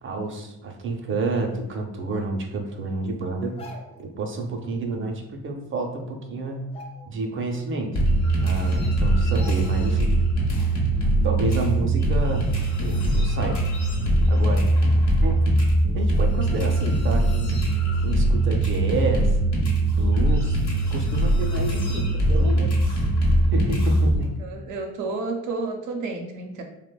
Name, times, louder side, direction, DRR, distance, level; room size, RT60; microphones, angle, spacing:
voice 1, 0.0-3.6 4.2-6.7 7.1-8.0 8.4-10.1 11.2-12.5 12.8-13.6 14.3-14.6 15.2-15.3 15.9-17.6 18.0-19.4 19.9-20.6 20.9-23.0 23.5-24.4, right 2 dB, 45° right, 2 dB, 0.5 m, -29 dB
sound 1, 3.4-4.1 5.6-5.7 6.0-6.2 6.6-7.5 7.8-7.9 8.7-8.8 9.4-10.0 10.4-10.5, left 1 dB, 20° left, 0.4 m, -45 dB
sound 2, 7.9-24.2, right 1 dB, 65° left, 0.9 m, -21 dB
voice 2, 24.4-26.6, right 3 dB, 90° right, 2 dB, 0.5 m, -31 dB
2.9 x 2.1 x 2.2 m, 0.88 s
cardioid pair, 90°, 30 cm